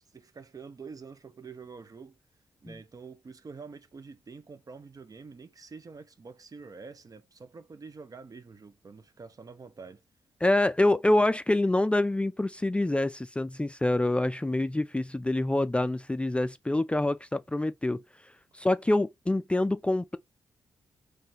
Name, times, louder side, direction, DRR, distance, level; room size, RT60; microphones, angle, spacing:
voice 1, 0.1-2.2 2.6-10.0, right 4 dB, 45° right, 0.9 m, -46 dB
voice 2, 10.4-18.0 18.6-20.2, left 1 dB, 15° left, 0.4 m, -26 dB
3.7 x 3.3 x 4.3 m
hypercardioid pair, 40°, 8 cm